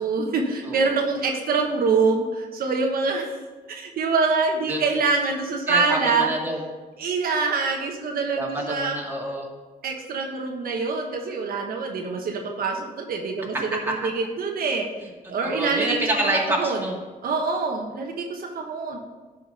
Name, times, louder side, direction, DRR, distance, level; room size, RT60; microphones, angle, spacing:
voice 1, 0.0-3.4 3.7-6.3 7.0-9.0 9.8-14.9 15.3-16.8 17.2-19.0, right 4 dB, 80° right, 1 dB, 1.2 m, -25 dB
voice 2, 5.7-6.6 8.4-9.5 15.4-16.9, right 1 dB, 15° right, -2 dB, 2.2 m, -27 dB
10.5 x 5.1 x 5.3 m, 1.3 s
cardioid pair, 95°, 15 cm